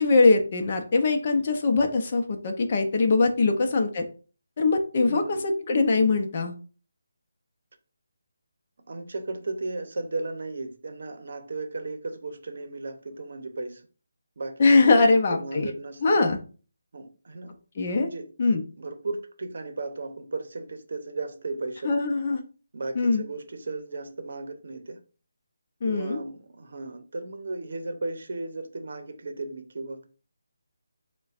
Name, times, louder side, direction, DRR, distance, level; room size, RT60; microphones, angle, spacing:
voice 1, 0.0-4.0 4.6-6.5 14.6-15.7 16.0-16.4 17.8-18.1 18.4-18.6 21.8-22.4 22.9-23.2 25.8-26.2, left 3 dB, 40° left, 0.7 m, -22 dB
voice 2, 3.5-3.8 5.1-5.4 8.9-13.8 14.4-16.2 16.9-17.5 18.0-18.3 18.8-21.9 22.7-25.0 25.8-30.0, right 3 dB, 60° right, 0.7 m, -35 dB
6.6 x 2.3 x 2.5 m
figure-of-eight pair, 160°, 0 cm